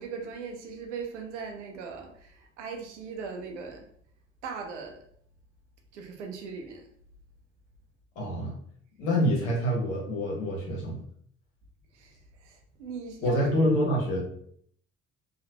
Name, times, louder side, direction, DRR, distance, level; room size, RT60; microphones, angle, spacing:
voice 1, 0.0-3.8 4.4-5.0 5.9-6.9 11.9-13.7, right 5 dB, 85° right, 2 dB, 0.6 m, -39 dB
voice 2, 8.1-8.5 9.0-11.0 13.2-14.2, equal, 80° left, -3 dB, 1.1 m, -26 dB
3.0 x 2.4 x 2.8 m, 0.64 s
hypercardioid pair, 50°, 35 cm